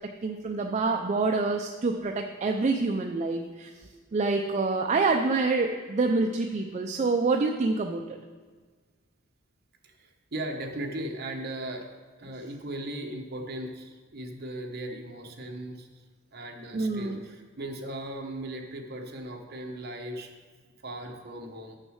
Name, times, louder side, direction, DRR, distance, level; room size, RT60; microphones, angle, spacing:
voice 1, 0.2-3.7 4.1-8.2 16.7-17.2, right 3 dB, 35° right, 3 dB, 0.4 m, -27 dB
voice 2, 9.8-11.9 12.2-16.0 16.3-20.3 20.8-21.8, right 1 dB, 50° right, 2 dB, 1.0 m, -37 dB
6.5 x 6.3 x 6.3 m, 1.5 s
head